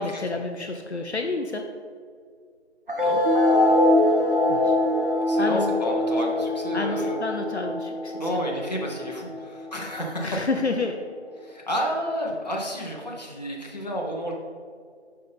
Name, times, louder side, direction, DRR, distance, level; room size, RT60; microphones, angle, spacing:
voice 1, 0.0-1.6 4.5-4.8 5.4-5.7 6.7-8.5 10.2-11.0, left 3 dB, 70° left, 4 dB, 0.7 m, -29 dB
sound 1, 2.9-9.9, left 1 dB, 50° right, 0.9 m, -23 dB
voice 2, 5.3-7.2 8.2-10.4 11.4-14.3, equal, 35° left, -2 dB, 1.1 m, -31 dB
8.1 x 5.6 x 3.5 m, 2.1 s
figure-of-eight pair, 170°, 35 cm